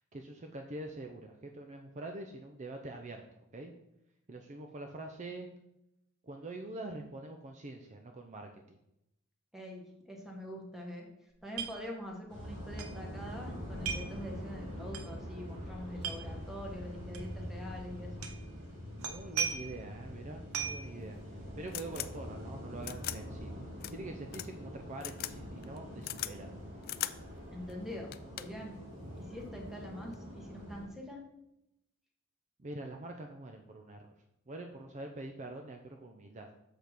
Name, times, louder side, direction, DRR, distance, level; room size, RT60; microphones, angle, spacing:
voice 1, 0.1-3.7 4.3-5.5 6.2-8.8 18.9-23.6 23.9-26.6 32.6-34.1 34.5-36.5, right 2 dB, 35° right, 4 dB, 0.6 m, -45 dB
voice 2, 9.5-11.1 11.4-18.3 27.5-28.8 29.2-31.2, left 1 dB, ahead, 0 dB, 1.6 m, -44 dB
sound 1, 11.5-11.7 12.0-12.1 12.8-12.9 13.8-14.1 14.9-15.0 15.9-16.2 17.1-17.2 18.2-18.4 19.0-19.8 20.5-20.9, right 7 dB, 90° right, 0.9 m, -36 dB
sound 2, 12.3-30.8, equal, 60° right, 3.2 m, -44 dB
sound 3, 21.0-21.1 21.7-22.1 22.8-23.2 23.8-23.9 24.3-24.5 25.0-25.3 25.6-26.3 26.8-27.1 27.7-27.8 28.1-28.6 29.8-30.1, left 14 dB, 45° left, 0.3 m, -38 dB
6.8 x 5.2 x 5.9 m, 0.84 s
head